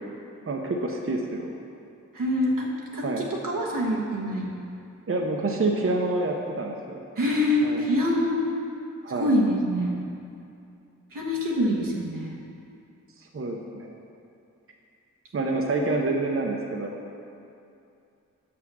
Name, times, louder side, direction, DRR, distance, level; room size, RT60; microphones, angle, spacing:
voice 1, 0.5-1.5 3.0-3.2 5.1-7.0 7.6-7.8 9.0-9.4 13.3-13.9 15.3-17.0, right 2 dB, 45° right, 1 dB, 0.8 m, -27 dB
voice 2, 2.1-4.5 7.2-8.4 9.1-9.9 11.1-12.4, left 1 dB, 85° right, -3 dB, 1.3 m, -25 dB
6.1 x 5.7 x 6.2 m, 2.6 s
cardioid pair, 45°, 32 cm